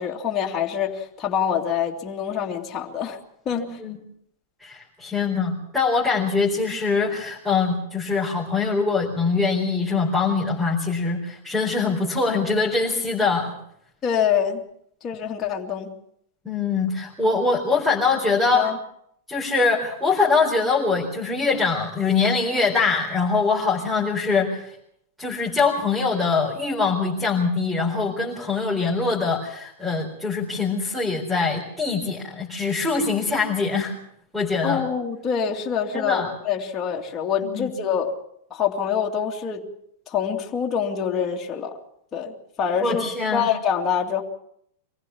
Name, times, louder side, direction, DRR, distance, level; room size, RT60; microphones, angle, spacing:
voice 1, 0.0-3.2 3.5-3.6 14.0-14.6 15.0-15.9 18.5-18.8 34.6-38.1 38.5-39.6 40.1-41.8 42.1-44.2, left 7 dB, 25° left, -1 dB, 2.4 m, -25 dB
voice 2, 3.5-4.0 4.6-13.5 16.4-18.7 19.3-24.8 25.2-33.9 34.3-34.8 35.9-36.3 37.4-37.7 42.8-43.5, left 4 dB, 5° right, -1 dB, 4.1 m, -23 dB
24.5 x 15.5 x 7.2 m, 0.71 s
hypercardioid pair, 115°, 0 cm